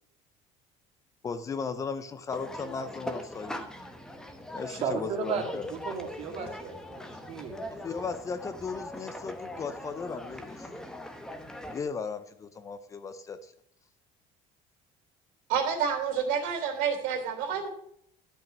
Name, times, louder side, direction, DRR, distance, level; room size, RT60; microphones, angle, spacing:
voice 1, 1.2-3.5 4.5-5.7 7.7-10.7 11.7-13.5, left 5 dB, 25° left, 11 dB, 0.7 m, -36 dB
sound 1, 2.3-11.8, left 1 dB, 5° left, 1.0 m, -41 dB
voice 2, 4.7-5.4 5.7-7.6, right 5 dB, 45° right, 2 dB, 2.3 m, -34 dB
voice 3, 15.5-17.7, right 7 dB, 80° right, 2 dB, 3.2 m, -29 dB
12.0 x 5.5 x 6.7 m, 0.71 s
cardioid pair, 165°, 14 cm